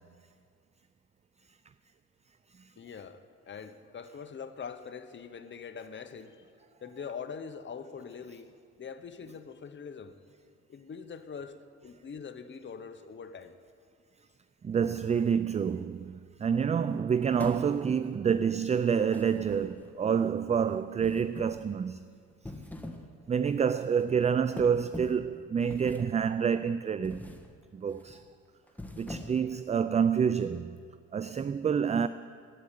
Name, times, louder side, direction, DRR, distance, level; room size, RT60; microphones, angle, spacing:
voice 1, 2.8-6.4 6.8-8.5 8.8-10.2 10.7-13.6, left 6 dB, 40° left, 1.0 m, -43 dB
voice 2, 14.6-22.0 23.3-27.3 27.7-28.2 29.0-30.8 31.1-32.1, right 7 dB, 25° right, 0.3 m, -28 dB
sound 1, 17.4-18.1 19.1-20.0 21.0-21.7 22.3-23.1 23.5-23.7 24.6-25.3 25.7-26.3 27.0-27.5 27.9-28.2 28.7-29.5, left 1 dB, 5° left, 1.4 m, -43 dB
12.0 x 8.7 x 9.9 m
cardioid pair, 90°, 30 cm